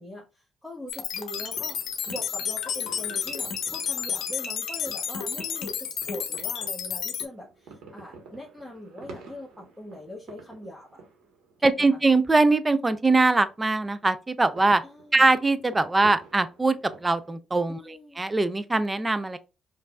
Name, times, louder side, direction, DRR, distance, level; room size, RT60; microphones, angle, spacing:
voice 1, 0.0-11.0 11.6-12.0 14.8-15.3 17.7-18.2, left 1 dB, 5° right, 1.1 m, -42 dB
sound 1, 0.9-7.3, left 8 dB, 75° left, 0.7 m, -31 dB
sound 2, 1.2-17.4, right 4 dB, 90° right, 1.2 m, -50 dB
voice 2, 11.6-14.8 15.1-19.4, right 3 dB, 20° right, 0.5 m, -22 dB
5.1 x 2.6 x 2.3 m
cardioid pair, 90°, 0 cm